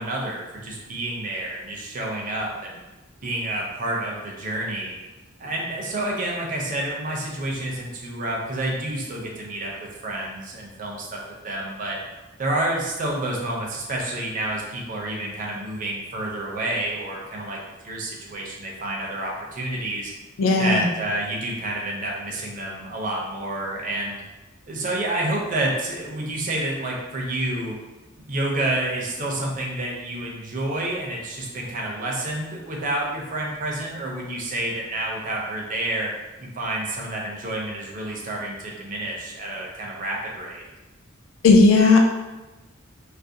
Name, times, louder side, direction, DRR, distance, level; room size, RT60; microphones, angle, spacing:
voice 1, 0.0-2.8 3.2-4.9 5.4-12.0 12.4-17.6 17.8-20.1 20.6-24.2 24.7-27.8 28.3-36.1 36.4-40.6, right 1 dB, 40° right, -2 dB, 0.4 m, -29 dB
voice 2, 20.4-20.9 41.4-42.0, left 3 dB, 65° left, 1 dB, 0.4 m, -15 dB
2.4 x 2.0 x 2.6 m, 1.1 s
head